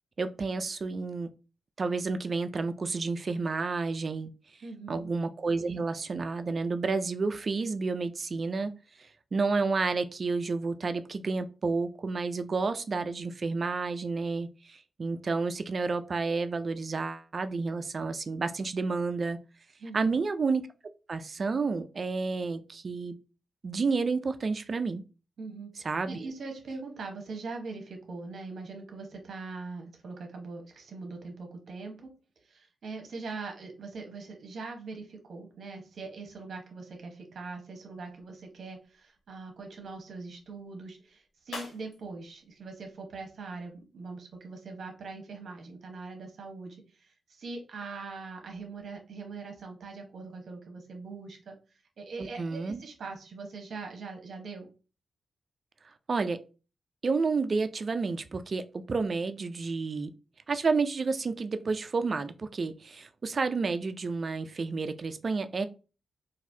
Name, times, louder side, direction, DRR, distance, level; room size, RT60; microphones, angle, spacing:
voice 1, 0.2-1.3 1.8-4.3 4.9-8.7 9.3-19.4 19.9-20.6 21.1-23.2 23.6-25.0 25.8-26.3 52.2-52.8 56.1-56.4 57.0-60.1 60.5-65.7, right 4 dB, 40° right, 9 dB, 0.3 m, -30 dB
voice 2, 4.6-5.1 19.8-20.2 25.4-32.1 32.4-51.6 52.0-54.7, right 3 dB, 65° right, 3 dB, 1.0 m, -42 dB
sound 1, 38.9-43.8, left 2 dB, 90° left, 1.2 m, -50 dB
4.0 x 2.5 x 2.7 m, 0.33 s
wide cardioid pair, 120°, 0 cm